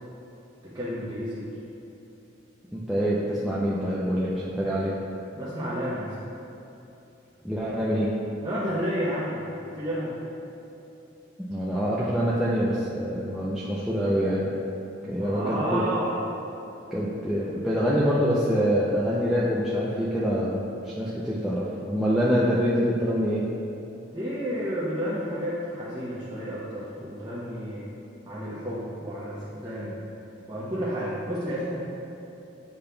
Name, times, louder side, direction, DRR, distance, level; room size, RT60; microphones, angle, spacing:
voice 1, 0.6-1.5 5.3-6.1 8.4-10.1 15.2-16.3 24.1-27.9 28.3-30.0 30.5-31.8, equal, 20° right, -9 dB, 0.8 m, -31 dB
voice 2, 2.7-5.0 7.4-8.1 11.4-14.5 15.1-15.8 16.9-20.6 20.8-23.4, equal, 5° right, -9 dB, 0.4 m, -25 dB
8.5 x 5.2 x 2.3 m, 3.0 s
head